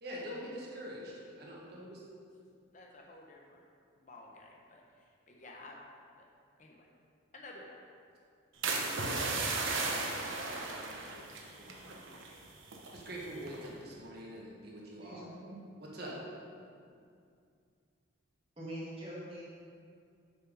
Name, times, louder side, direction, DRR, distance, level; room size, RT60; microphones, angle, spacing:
voice 1, 0.0-2.0 10.5-12.4 12.8-15.4 15.8-16.2, equal, 50° right, -4 dB, 1.5 m, -45 dB
voice 2, 2.7-3.6 4.0-5.8 6.2-6.3 6.6-6.9 7.3-7.8, left 2 dB, 35° left, 0 dB, 0.8 m, -52 dB
sound 1, 8.6-12.4 12.6-13.0 13.5-13.8, right 3 dB, 70° right, 1.0 m, -35 dB
voice 3, 15.0-15.6 18.6-19.5, right 1 dB, 25° right, -7 dB, 2.0 m, -44 dB
7.7 x 5.6 x 5.2 m, 2.3 s
head